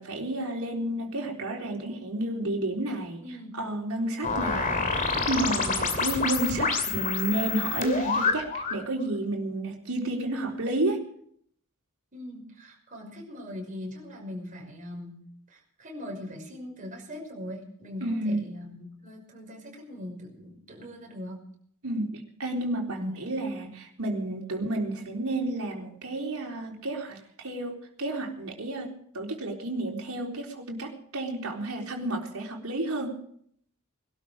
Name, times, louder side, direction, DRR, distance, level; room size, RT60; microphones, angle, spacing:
voice 1, 0.0-3.2 3.5-4.8 5.1-11.1 18.0-18.4 21.8-33.2, right 1 dB, 75° right, 0 dB, 4.0 m, -31 dB
sound 1, 4.2-8.8, left 4 dB, 40° left, 2.5 m, -28 dB
voice 2, 12.1-15.2 15.5-21.4 23.0-23.2, left 1 dB, 35° right, 1 dB, 5.9 m, -41 dB
21.5 x 12.5 x 5.1 m, 0.65 s
head